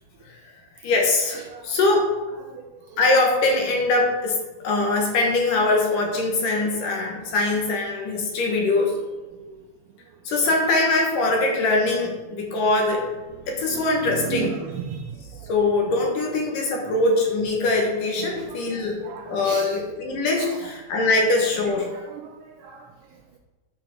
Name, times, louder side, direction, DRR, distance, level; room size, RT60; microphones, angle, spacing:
voice 1, 0.8-2.1 3.0-4.4 4.6-9.0 10.3-13.1 13.5-14.5 15.5-19.0 19.3-21.9, left 2 dB, 65° left, 0 dB, 3.1 m, -22 dB
voice 2, 1.4-1.8 2.4-3.0 6.6-7.1 9.4-9.6 13.7-15.5 17.8-17.9 18.2-20.0 20.4-20.7 21.9-23.4, right 7 dB, 80° right, 3 dB, 1.8 m, -37 dB
9.4 x 6.3 x 6.0 m, 1.2 s
omnidirectional pair, 4.2 m